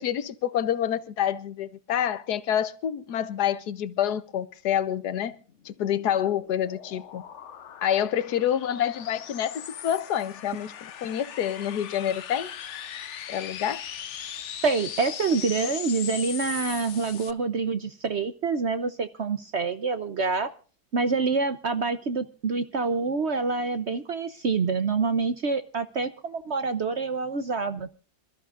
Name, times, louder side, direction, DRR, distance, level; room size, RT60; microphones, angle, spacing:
voice 1, 0.0-5.4 5.6-7.2 7.8-12.5 13.3-13.8, left 10 dB, 80° left, 1.5 m, -27 dB
sound 1, 5.5-17.3, left 9 dB, 55° left, 1.0 m, -39 dB
voice 2, 14.6-20.5 20.9-27.9, right 4 dB, 50° right, 1.0 m, -27 dB
27.0 x 13.5 x 2.5 m
omnidirectional pair, 1.7 m